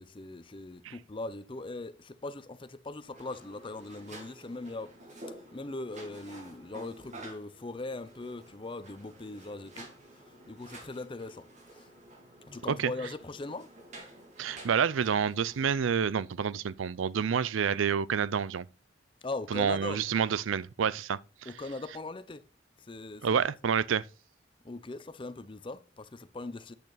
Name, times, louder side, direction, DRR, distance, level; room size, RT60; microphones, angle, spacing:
voice 1, 0.0-11.9 12.5-13.7 19.2-20.0 21.5-22.4 22.8-23.4 24.6-26.7, left 2 dB, 25° left, 0.6 m, -40 dB
sound 1, 3.1-15.7, right 1 dB, 40° right, 2.1 m, -50 dB
voice 2, 14.4-18.6 19.5-21.5 23.2-24.0, right 7 dB, 85° right, 0.4 m, -28 dB
8.4 x 6.6 x 4.0 m
head